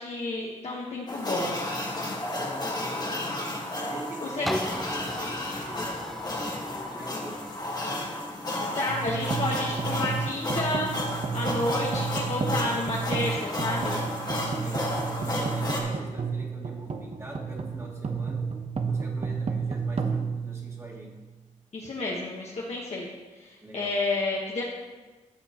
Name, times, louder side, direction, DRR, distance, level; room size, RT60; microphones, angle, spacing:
voice 1, 0.0-1.5 4.2-4.5 8.8-10.9 11.3-14.0 21.7-23.1 23.3-24.6, left 2 dB, 55° left, -4 dB, 1.2 m, -30 dB
sound 1, 1.1-15.8, left 1 dB, 30° left, 1.5 m, -32 dB
voice 2, 2.3-3.5 3.9-7.4 14.6-18.5 18.9-21.1 23.6-23.9, equal, 20° right, -3 dB, 2.0 m, -43 dB
sound 2, 4.4-10.2 10.8-10.9, equal, ahead, 0.3 m, -39 dB
sound 3, 8.9-21.3, right 5 dB, 50° right, 0.8 m, -32 dB
12.5 x 7.0 x 2.9 m, 1.2 s
cardioid pair, 85°, 13 cm